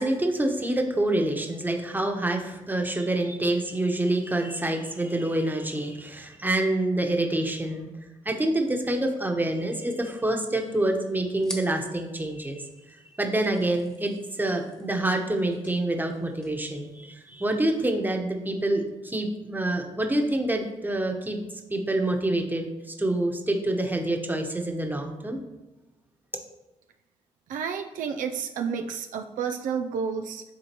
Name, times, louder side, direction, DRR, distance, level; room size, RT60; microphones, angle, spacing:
voice 1, 0.0-7.9 8.2-12.7 13.2-21.4 21.7-25.4, right 1 dB, 15° right, 3 dB, 1.2 m, -27 dB
sound 1, 10.0-17.6, equal, 5° left, 1.4 m, -48 dB
voice 2, 27.5-30.4, right 6 dB, 75° right, 4 dB, 0.5 m, -30 dB
10.0 x 3.7 x 3.0 m, 1.1 s
supercardioid pair, 60°, 14 cm